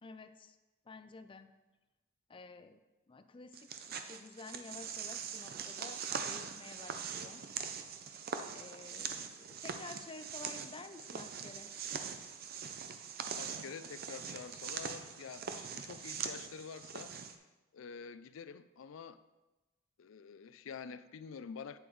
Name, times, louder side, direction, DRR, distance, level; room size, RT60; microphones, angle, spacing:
voice 1, 0.0-0.6 0.9-1.5 2.3-2.8 3.1-7.4 8.2-8.3 8.5-11.7, left 3 dB, 25° left, 0.4 m, -51 dB
sound 1, 3.5-17.3, right 6 dB, 50° right, 0.6 m, -42 dB
voice 2, 13.3-17.4 17.7-19.2 20.0-21.8, left 6 dB, 90° left, 0.4 m, -48 dB
9.0 x 7.7 x 3.2 m
head